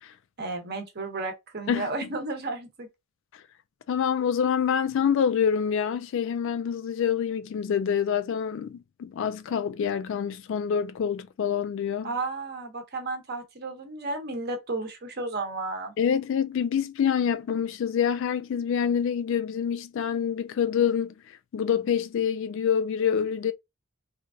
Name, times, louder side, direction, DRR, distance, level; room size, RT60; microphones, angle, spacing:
voice 1, 0.4-2.9 12.0-15.9, right 3 dB, 50° right, 0.8 m, -33 dB
voice 2, 1.7-2.1 3.3-3.4 3.9-12.1 16.0-23.5, left 7 dB, 65° left, 0.3 m, -26 dB
3.2 x 2.4 x 2.3 m
head